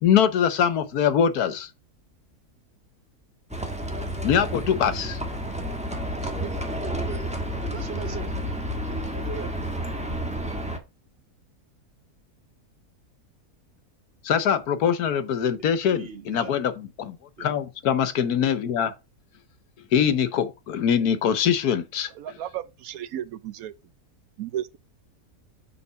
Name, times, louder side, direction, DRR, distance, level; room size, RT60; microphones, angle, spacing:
voice 1, 0.0-1.7 4.2-5.2 14.2-18.9 19.9-22.1, left 8 dB, 80° left, 1.5 m, -23 dB
Livestock farm animals working animals, 3.5-10.8, equal, 5° right, 1.1 m, -30 dB
voice 2, 6.8-8.4 8.9-9.5 15.9-16.6 17.4-17.5, right 6 dB, 45° right, 1.0 m, -39 dB
voice 3, 22.2-23.7 24.4-24.8, right 11 dB, 70° right, 1.0 m, -34 dB
7.0 x 4.3 x 5.6 m
omnidirectional pair, 1.6 m